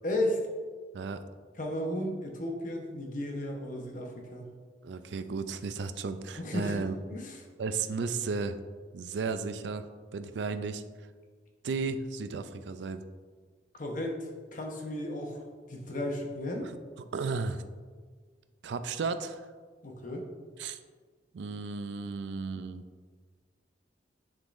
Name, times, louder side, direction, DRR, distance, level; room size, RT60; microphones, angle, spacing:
voice 1, 0.0-0.5 1.6-4.5 6.4-7.5 13.7-15.4 15.7-16.7 19.8-20.3, left 1 dB, 45° left, 2 dB, 0.9 m, -34 dB
voice 2, 4.8-6.9 7.6-8.6 8.9-9.9 10.1-10.8 11.6-13.0 16.6-16.7 17.1-17.6 18.6-19.4 20.6-20.8 21.3-22.8, right 4 dB, 70° right, 10 dB, 0.4 m, -34 dB
9.9 x 3.7 x 2.5 m, 1.5 s
head